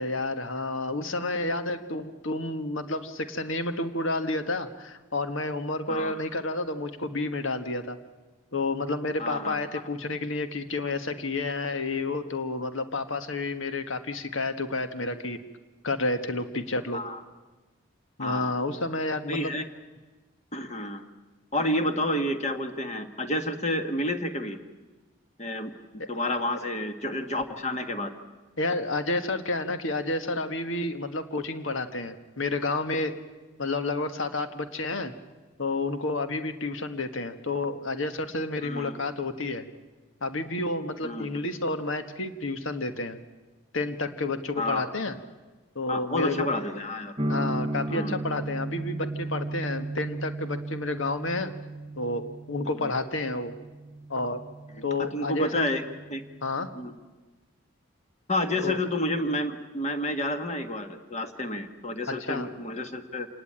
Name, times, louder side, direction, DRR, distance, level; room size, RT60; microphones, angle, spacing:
voice 1, 0.0-8.0 8.5-15.4 15.8-17.0 18.2-19.5 26.0-26.1 28.6-33.2 33.6-35.1 35.6-39.7 40.2-43.2 43.7-45.1 45.7-46.6 47.3-51.5 52.0-53.5 54.1-54.4 54.8-55.6 56.4-56.7 58.6-58.8 62.1-62.5, left 2 dB, 75° left, 9 dB, 1.5 m, -30 dB
voice 2, 9.2-9.6 16.9-17.2 18.2-18.5 19.3-19.6 20.5-21.1 21.5-24.6 25.4-25.7 26.1-28.1 38.6-38.9 41.0-41.3 44.6-44.9 45.9-47.1 47.9-48.2 52.7-52.9 55.1-55.8 56.1-56.2 56.7-56.9 58.3-63.3, left 1 dB, 35° left, 7 dB, 1.6 m, -30 dB
sound 1, 47.2-57.0, right 2 dB, 25° right, 1.0 m, -36 dB
27.0 x 19.5 x 8.8 m, 1.2 s
head